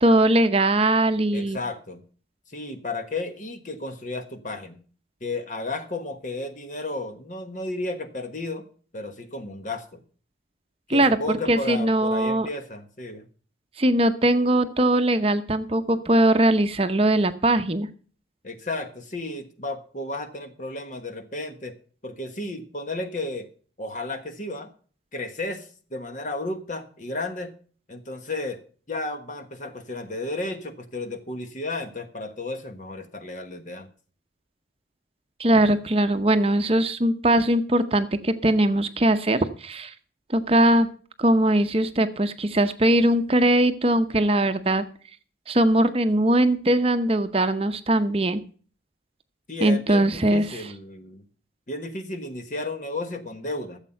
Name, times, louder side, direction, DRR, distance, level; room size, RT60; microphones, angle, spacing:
voice 1, 0.0-1.6 10.9-12.5 13.8-17.9 35.4-39.9 40.3-40.9 41.2-44.8 45.5-48.4 49.6-50.6, right 1 dB, 30° right, 9 dB, 0.8 m, -21 dB
voice 2, 1.3-2.0 2.5-4.8 5.2-8.6 8.9-10.0 10.9-13.3 18.4-21.8 22.0-23.5 23.8-24.7 25.1-27.5 27.9-28.6 28.9-33.9 49.5-51.2 51.7-53.8, left 2 dB, 45° left, 8 dB, 1.3 m, -33 dB
13.5 x 7.4 x 5.7 m, 0.42 s
head